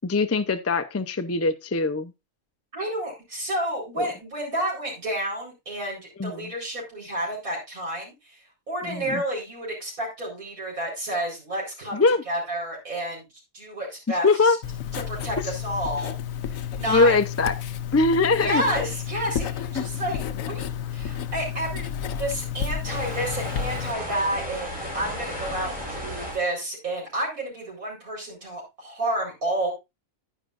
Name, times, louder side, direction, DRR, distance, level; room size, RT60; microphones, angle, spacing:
voice 1, 0.0-2.1 4.0-4.1 6.2-6.5 8.8-9.2 11.9-12.2 14.1-14.6 16.9-17.5 17.9-18.6 19.8-19.9, left 3 dB, 25° left, 9 dB, 0.3 m, -22 dB
voice 2, 2.7-8.4 8.7-13.2 13.5-14.5 14.9-16.2 16.5-17.2 18.4-21.9 22.2-29.7, right 1 dB, 90° right, -3 dB, 4.9 m, -30 dB
Writing, 14.6-23.9, left 9 dB, 75° left, 1.1 m, -31 dB
sound 1, 22.8-26.4, equal, 5° right, 5.1 m, -34 dB
10.0 x 10.0 x 2.5 m, 0.23 s
omnidirectional pair, 1.4 m